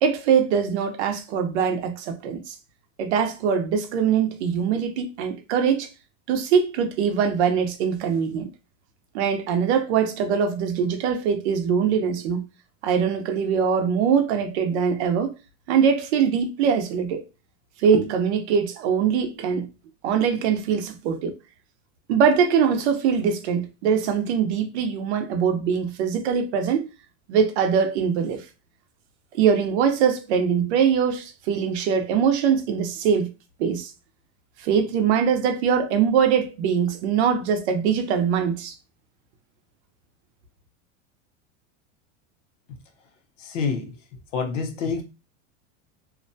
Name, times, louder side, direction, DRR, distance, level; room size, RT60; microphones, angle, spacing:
voice 1, 0.0-2.5 3.0-5.9 6.3-8.5 9.1-12.4 12.8-15.3 15.7-17.2 17.8-19.7 20.0-21.4 22.1-26.9 27.3-28.4 29.3-33.3 33.6-33.9 34.6-38.7, right 7 dB, 65° right, 0.7 m, -22 dB
voice 2, 43.4-44.0 44.3-45.0, left 5 dB, 90° left, 0.9 m, -27 dB
2.6 x 2.2 x 2.6 m
supercardioid pair, 180°, 36 cm